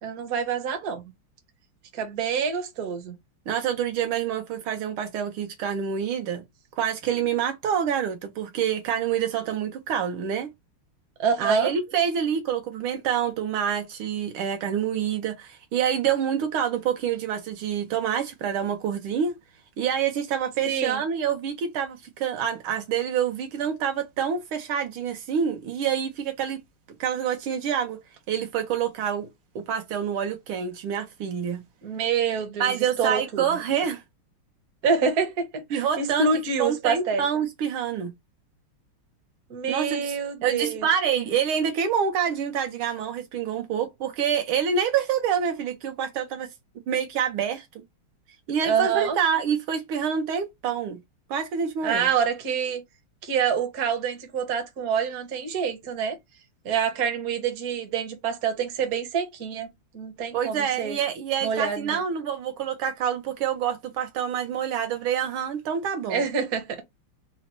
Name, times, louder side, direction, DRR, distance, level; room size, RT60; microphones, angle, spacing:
voice 1, 0.0-1.1 1.9-3.1 11.2-11.7 20.7-21.0 31.8-33.4 34.8-37.2 39.5-40.9 48.6-49.2 51.8-52.8 53.2-56.2 56.6-59.7 59.9-61.0 61.4-62.0 66.1-66.8, right 6 dB, 50° right, 1.2 m, -26 dB
voice 2, 3.5-6.4 6.8-10.5 11.4-19.3 19.8-26.6 27.0-28.0 28.3-29.3 29.5-31.6 32.6-34.0 35.7-36.3 36.6-38.1 39.7-40.2 40.4-46.5 46.9-47.7 48.5-51.0 51.3-52.1 60.3-66.2, right 8 dB, 75° right, 1.5 m, -27 dB
4.0 x 2.1 x 4.2 m
omnidirectional pair, 2.4 m